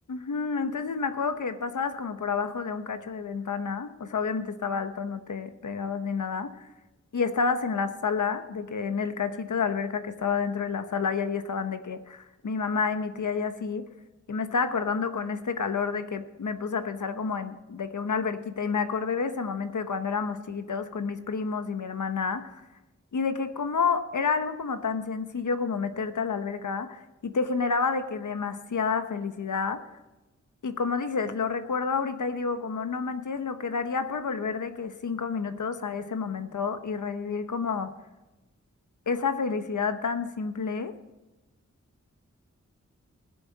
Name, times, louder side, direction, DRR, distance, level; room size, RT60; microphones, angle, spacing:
voice 1, 0.1-6.7 7.1-13.8 14.3-22.5 23.1-29.8 30.6-37.9 39.1-40.9, left 5 dB, 80° left, 9 dB, 1.0 m, -29 dB
20.0 x 7.9 x 4.1 m, 1.1 s
wide cardioid pair, 75°, 30 cm